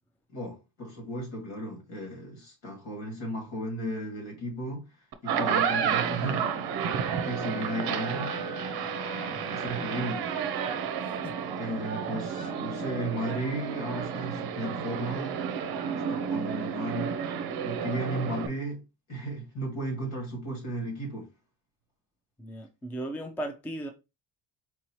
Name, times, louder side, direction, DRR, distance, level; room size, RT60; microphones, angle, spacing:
voice 1, 0.3-4.9 5.2-6.5 7.2-8.4 9.4-10.2 11.5-15.4 16.1-17.1 17.6-18.8 19.1-21.3, right 1 dB, 75° left, 2.3 m, -34 dB
sound 1, 5.1-18.5, right 7 dB, 55° right, 0.6 m, -31 dB
Wind instrument woodwind instrument, 6.8-11.1, right 1 dB, 55° left, 1.1 m, -41 dB
voice 2, 11.0-11.3 22.4-23.9, right 1 dB, 5° left, 0.4 m, -37 dB
4.6 x 2.8 x 2.9 m
cardioid pair, 125°, 45 cm